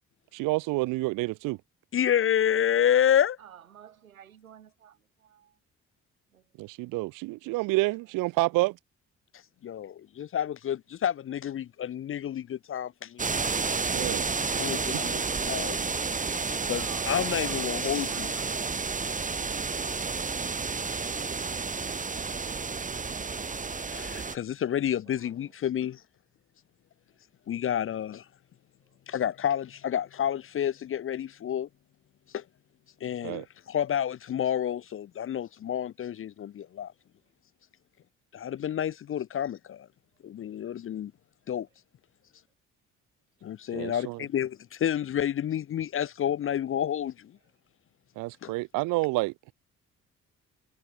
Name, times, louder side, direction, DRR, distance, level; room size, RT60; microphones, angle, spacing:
voice 1, 0.3-1.6 6.6-8.8 13.9-14.3 14.8-15.1 33.2-33.4 43.7-44.2 48.2-49.3, right 22 dB, 55° right, 0.5 m, -29 dB
voice 2, 1.9-3.4 9.6-13.2 14.6-15.8 16.4-18.3 23.9-26.0 27.5-28.2 29.1-31.7 32.3-32.4 33.0-36.9 38.3-39.9 40.2-41.1 41.5-41.7 43.4-47.3 48.4-48.5, left 10 dB, 35° left, 0.5 m, -29 dB
voice 3, 3.4-5.6 6.3-6.5 7.4-8.1 9.8-10.0 16.7-19.1 20.7-21.2 25.0-25.6 28.8-29.0, right 9 dB, 85° right, 3.8 m, -51 dB
sound 1, 13.2-24.4, right 4 dB, 20° right, 1.1 m, -31 dB
figure-of-eight pair, 40°, 40 cm